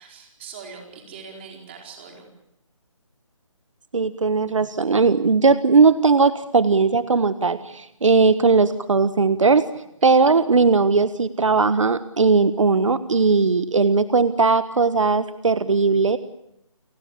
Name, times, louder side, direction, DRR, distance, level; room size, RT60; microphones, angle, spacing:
voice 1, 0.0-2.3 10.0-10.2, right 5 dB, 20° right, 3 dB, 4.7 m, -42 dB
voice 2, 3.9-9.7 10.0-16.2, right 4 dB, 70° right, 14 dB, 1.4 m, -18 dB
29.5 x 17.5 x 8.5 m, 0.82 s
hypercardioid pair, 170°, 17 cm